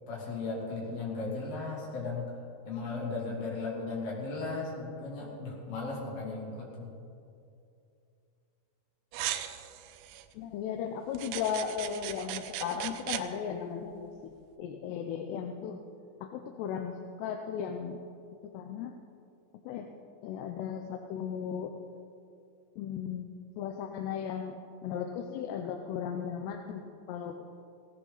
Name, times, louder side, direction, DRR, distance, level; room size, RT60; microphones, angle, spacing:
voice 1, 0.1-2.4 2.7-6.9, left 3 dB, 60° left, -3 dB, 4.5 m, -36 dB
sound 1, 9.1-10.3 11.2-13.2, right 12 dB, 85° right, 2.9 m, -38 dB
voice 2, 10.3-14.1 14.6-15.8 16.2-18.0 18.5-18.9 19.6-19.9 20.2-21.7 22.8-23.3 23.6-24.6 24.8-27.4, left 8 dB, 80° left, 4 dB, 2.6 m, -36 dB
17.5 x 17.0 x 4.0 m, 2.6 s
omnidirectional pair, 5.1 m